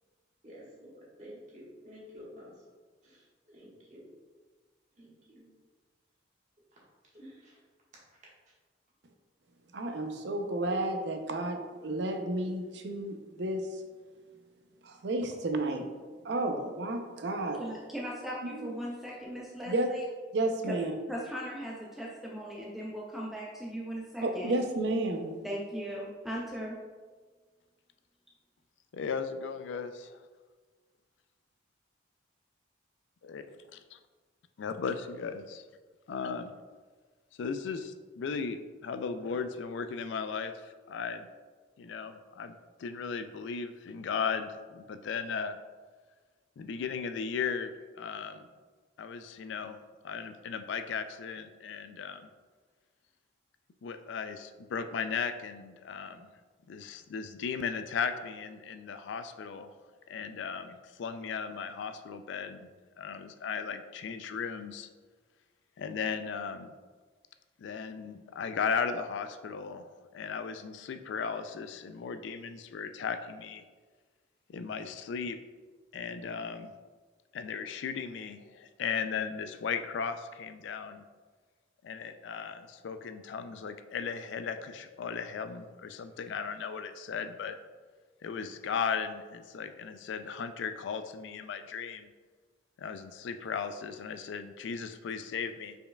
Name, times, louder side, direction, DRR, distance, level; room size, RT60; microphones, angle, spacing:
voice 1, 0.4-2.6 3.0-4.1 4.9-5.5 6.7-6.8 7.1-7.7 8.1-8.2 8.5-8.6, equal, 40° right, -6 dB, 1.4 m, -51 dB
voice 2, 9.7-13.8 14.8-15.8 16.2-17.6 18.5-18.7 19.6-19.9 20.3-21.0 24.2-25.3, right 2 dB, 60° right, 5 dB, 0.5 m, -32 dB
voice 3, 17.6-20.0 20.7-20.8 21.1-24.5 25.4-26.8, equal, ahead, -4 dB, 0.4 m, -38 dB
voice 4, 28.9-30.2 33.3-33.4 34.6-35.6 36.1-36.5 37.4-41.3 41.8-42.5 42.8-45.6 46.6-48.5 49.0-49.8 50.0-52.3 53.8-56.3 56.7-59.7 60.1-62.7 63.0-64.9 65.8-66.7 67.6-69.9 70.1-73.6 74.5-75.4 75.9-76.7 77.3-81.0 81.8-87.6 88.2-92.1 92.8-95.8, left 6 dB, 70° left, 10 dB, 0.3 m, -36 dB
5.4 x 4.5 x 2.2 m, 1.4 s
head